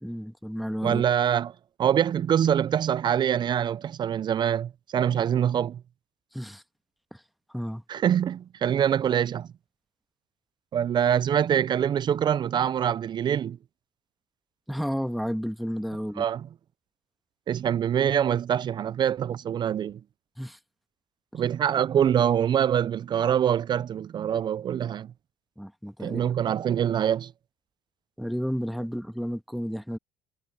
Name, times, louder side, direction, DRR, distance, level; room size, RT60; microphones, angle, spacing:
voice 1, 0.0-1.0 6.3-6.6 7.1-7.2 7.5-7.8 14.7-16.2 20.4-20.6 21.3-21.4 25.6-26.2 28.2-30.0, equal, ahead, 1.5 m, -32 dB
voice 2, 0.8-5.8 7.9-9.5 10.7-13.6 16.2-16.5 17.5-20.0 21.3-25.1 26.0-27.3, right 9 dB, 40° right, 0.5 m, -24 dB
supercardioid pair, 75°, 11 cm